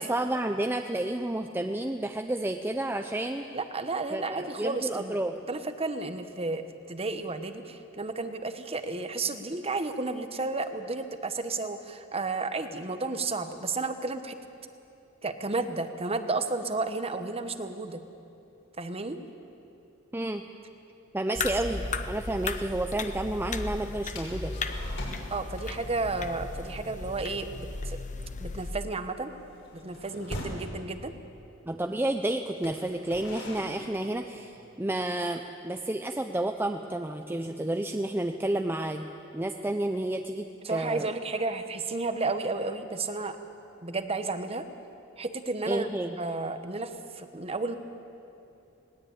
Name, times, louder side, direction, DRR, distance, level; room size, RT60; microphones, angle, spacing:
voice 1, 0.0-3.5 4.1-5.4 20.1-20.4 21.1-24.5 31.6-39.1 39.3-41.1 45.7-46.2, right 1 dB, 10° right, 5 dB, 0.7 m, -31 dB
voice 2, 3.5-5.2 5.5-14.4 15.2-18.0 18.8-19.2 25.3-28.0 28.4-29.3 29.7-31.1 40.6-43.4 43.8-44.7 45.2-45.9 46.2-47.8, right 3 dB, 30° right, 8 dB, 1.2 m, -32 dB
sound 1, 21.4-28.7, left 3 dB, 40° left, 0.9 m, -35 dB
sound 2, 24.1-25.3 25.5-25.9 26.2-26.4 26.8-27.1 27.3-27.6 28.0-30.7 31.5-31.6 32.5-34.8, left 1 dB, 60° left, 5.6 m, -42 dB
20.5 x 19.5 x 8.7 m, 2.7 s
head